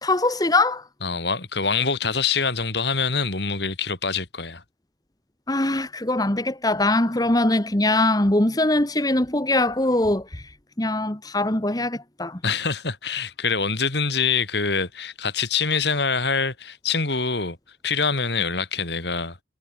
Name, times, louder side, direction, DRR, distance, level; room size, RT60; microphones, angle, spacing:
voice 1, 0.0-0.8 5.5-10.4 10.8-12.4, left 2 dB, 20° left, 1.4 m, -22 dB
voice 2, 1.0-4.6 12.4-17.6 17.8-19.4, left 5 dB, 60° left, 3.0 m, -25 dB
head